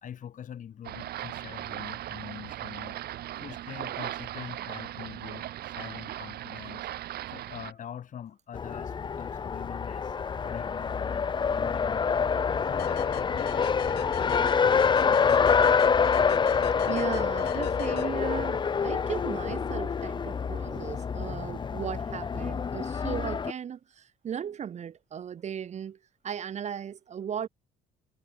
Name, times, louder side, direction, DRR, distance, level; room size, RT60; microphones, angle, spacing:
voice 1, 0.0-3.0 3.4-6.9 7.3-10.2 10.4-12.0 12.5-15.4, left 9 dB, 50° left, 4.0 m, -44 dB
sound 1, 0.8-7.7, right 13 dB, 70° right, 4.8 m, -38 dB
Race car auto racing, 8.5-23.5, left 6 dB, 25° left, 0.8 m, -26 dB
sound 2, 12.8-18.6, left 14 dB, 70° left, 4.3 m, -40 dB
voice 2, 16.9-26.0 26.2-27.5, right 8 dB, 40° right, 1.3 m, -37 dB
cardioid pair, 110°, 17 cm